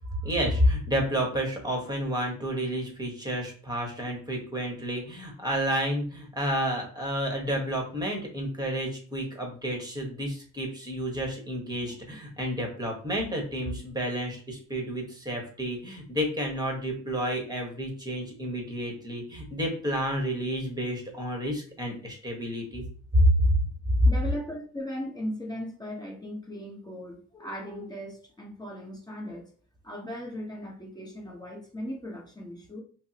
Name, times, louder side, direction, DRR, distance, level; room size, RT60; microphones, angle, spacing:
voice 1, 0.2-22.8 23.1-23.6, equal, 15° right, 1 dB, 1.2 m, -29 dB
voice 2, 24.0-29.5 29.8-32.8, equal, 15° left, -1 dB, 1.0 m, -38 dB
5.1 x 2.0 x 2.8 m, 0.43 s
cardioid pair, 90°, 30 cm